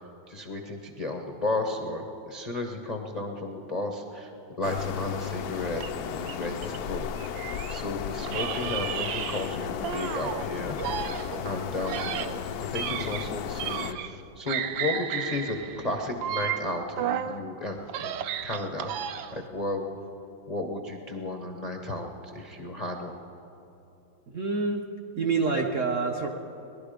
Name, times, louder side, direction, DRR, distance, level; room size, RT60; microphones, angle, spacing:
voice 1, 0.3-4.3 4.6-7.1 7.7-10.8 11.4-12.1 12.7-18.9 19.3-20.0 20.5-23.2, left 2 dB, 45° left, 3 dB, 0.5 m, -33 dB
sound 1, 4.6-13.9, left 8 dB, 75° left, 0.9 m, -34 dB
sound 2, 5.8-7.9 8.3-10.5 10.8-14.2 14.5-17.4 17.8-19.5, right 9 dB, 80° right, 1.3 m, -33 dB
voice 2, 24.3-24.9 25.1-26.3, right 4 dB, 60° right, 1 dB, 0.9 m, -27 dB
19.0 x 11.5 x 5.0 m, 3.0 s
omnidirectional pair, 2.1 m